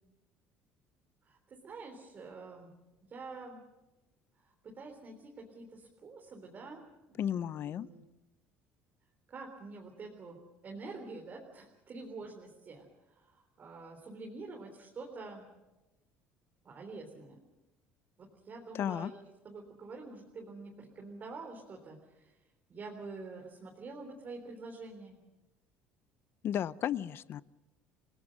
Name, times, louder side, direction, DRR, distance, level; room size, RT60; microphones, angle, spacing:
voice 1, 1.2-2.8 3.1-3.6 4.6-6.8 7.1-8.0 9.3-10.4 10.6-15.5 16.6-17.4 18.2-19.2 19.4-22.3 22.7-25.2, right 3 dB, 40° right, 0 dB, 3.8 m, -47 dB
voice 2, 7.2-7.9 18.7-19.1 26.4-27.4, left 10 dB, 50° left, 18 dB, 0.7 m, -33 dB
29.0 x 18.0 x 6.5 m, 1.1 s
cardioid pair, 110°, 5 cm